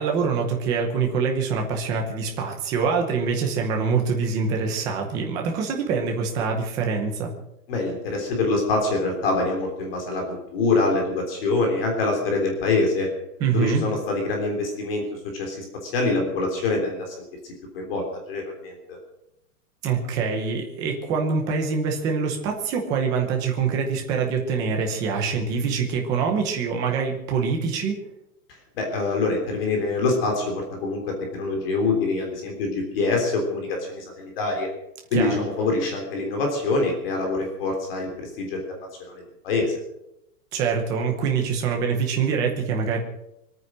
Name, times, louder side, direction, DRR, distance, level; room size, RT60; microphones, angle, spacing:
voice 1, 0.0-7.3 13.4-13.8 19.8-27.9 35.1-35.4 40.5-43.0, right 5 dB, 10° right, 2 dB, 0.8 m, -25 dB
voice 2, 7.7-13.1 13.5-15.0 15.3-17.2 17.7-18.7 28.5-34.7 35.1-39.7, left 3 dB, 35° left, 2 dB, 3.5 m, -25 dB
24.0 x 9.3 x 6.2 m, 0.84 s
hypercardioid pair, 180°, 48 cm